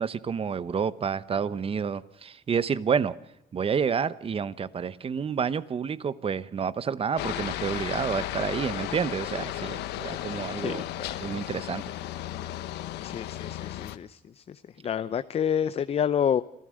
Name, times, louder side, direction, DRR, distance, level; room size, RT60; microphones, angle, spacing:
voice 1, 0.0-3.1 3.5-10.8 11.2-11.8, right 6 dB, 35° right, 16 dB, 0.9 m, -29 dB
Aircraft, 7.2-14.0, left 13 dB, 80° left, 1.2 m, -34 dB
voice 2, 10.6-11.1 13.0-14.4 14.8-16.4, left 8 dB, 35° left, 13 dB, 0.7 m, -28 dB
27.5 x 15.5 x 6.4 m, 0.88 s
cardioid pair, 110°, 17 cm